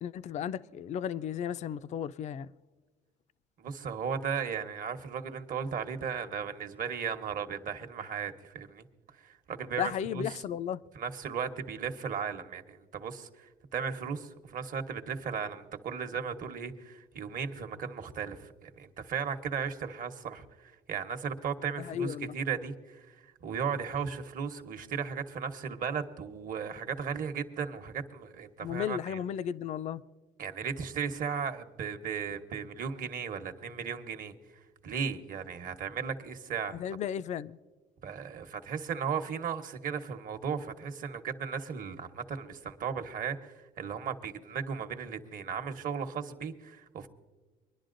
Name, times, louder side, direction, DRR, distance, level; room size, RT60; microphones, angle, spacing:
voice 1, 0.0-2.5 9.8-10.8 21.8-22.3 28.6-30.0 36.8-37.5, left 9 dB, 45° left, 0.4 m, -34 dB
voice 2, 3.6-8.8 9.2-10.4 10.9-23.1 23.4-29.2 30.4-34.3 34.8-36.8 38.0-47.1, right 6 dB, 55° right, 1.0 m, -36 dB
24.5 x 11.0 x 2.6 m
cardioid pair, 110°, 17 cm